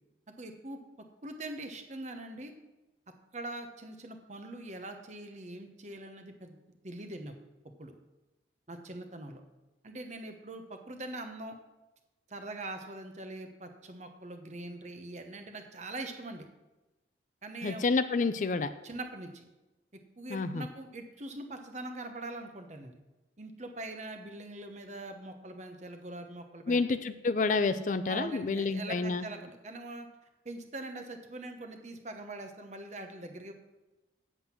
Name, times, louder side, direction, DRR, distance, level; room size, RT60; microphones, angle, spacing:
voice 1, 0.4-0.8 1.2-2.5 3.3-6.6 6.8-7.3 7.8-7.9 8.7-9.4 9.8-11.6 12.3-16.5 17.4-17.9 18.8-19.4 20.2-23.0 23.4-26.8 27.7-30.1 30.4-33.5, right 2 dB, 40° right, 6 dB, 1.0 m, -42 dB
voice 2, 17.6-18.7 20.3-20.7 26.7-29.2, left 3 dB, 40° left, 12 dB, 0.4 m, -29 dB
8.0 x 7.8 x 5.9 m, 1.0 s
head